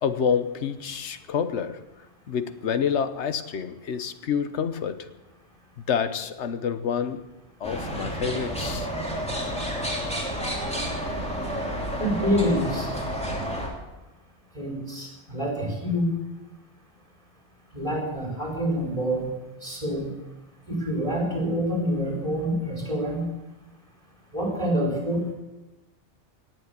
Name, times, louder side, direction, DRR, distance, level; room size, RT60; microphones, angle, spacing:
voice 1, 0.0-1.9 2.3-5.1 5.9-7.3 7.6-8.9, left 7 dB, 90° left, 1.2 m, -28 dB
sound 1, 7.6-13.7, equal, 5° left, 2.9 m, -30 dB
voice 2, 12.0-12.9 14.5-16.1 17.7-19.3 19.6-20.1 20.7-23.2 24.3-25.3, equal, 30° right, 4.4 m, -26 dB
18.5 x 7.6 x 8.2 m
omnidirectional pair, 1.1 m